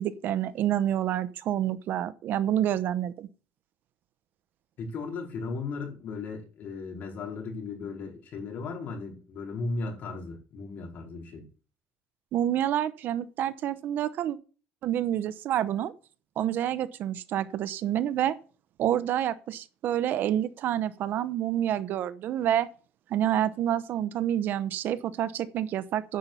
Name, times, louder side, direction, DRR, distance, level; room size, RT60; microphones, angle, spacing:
voice 1, 0.0-3.3 12.3-14.4 14.8-15.9 16.4-18.4 18.8-22.7 23.1-26.2, right 11 dB, 60° right, 0.8 m, -28 dB
voice 2, 4.8-11.5, left 3 dB, 55° left, 4.5 m, -36 dB
10.5 x 5.6 x 8.2 m
cardioid pair, 135°, 4 cm